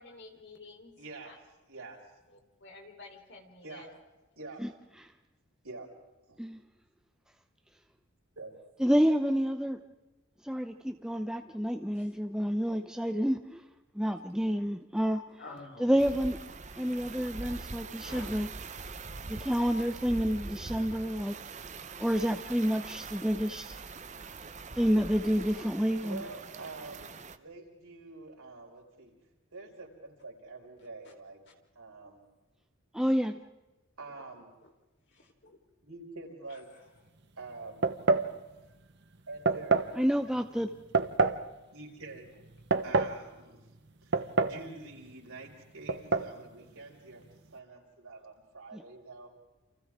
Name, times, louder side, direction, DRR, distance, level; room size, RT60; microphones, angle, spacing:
voice 1, 0.0-1.4 2.3-3.9 12.0-12.1 15.4-15.9 18.1-18.4 34.6-34.7 35.1-35.6 36.5-36.6, left 3 dB, 55° left, 2 dB, 4.0 m, -50 dB
voice 2, 1.0-1.4 1.7-2.0 3.6-3.9 4.4-4.6 5.6-5.9 6.3-6.4 8.4-8.6 26.0-29.1 29.5-31.4 31.7-32.3 34.0-34.5 35.8-36.7 37.4-37.9 39.3-40.1 41.7-42.3 42.8-43.7 44.0-47.2 47.5-49.3, right 3 dB, 90° right, -1 dB, 5.8 m, -46 dB
voice 3, 8.8-9.8 10.4-13.6 13.9-15.2 15.8-16.4 16.8-18.5 19.3-21.3 22.0-23.8 24.8-26.2 32.9-33.4 40.0-40.7 48.7-48.8, equal, 5° right, 6 dB, 0.7 m, -29 dB
sound 1, 16.0-27.4, right 4 dB, 35° right, 0.8 m, -43 dB
sound 2, 37.8-38.3 39.5-39.9 40.9-41.4 42.5-43.2 44.1-44.7 44.9-45.0 45.9-46.3, right 3 dB, 55° right, 1.1 m, -26 dB
29.5 x 28.0 x 3.7 m, 1.1 s
head